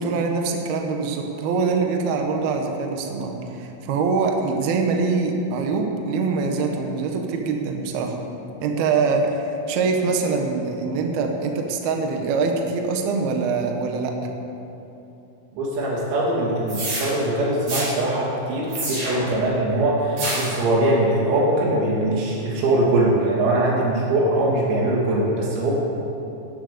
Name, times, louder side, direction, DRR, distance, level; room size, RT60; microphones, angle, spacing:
voice 1, 0.0-8.2 8.6-14.3, right 4 dB, 65° right, 3 dB, 2.6 m, -24 dB
voice 2, 15.5-25.7, right 1 dB, 90° right, -4 dB, 5.8 m, -22 dB
sound 1, 16.7-17.1 17.7-17.9 18.7-19.3 20.2-20.6, right 2 dB, 40° right, 5.2 m, -27 dB
18.0 x 10.5 x 6.9 m, 2.9 s
omnidirectional pair, 5.9 m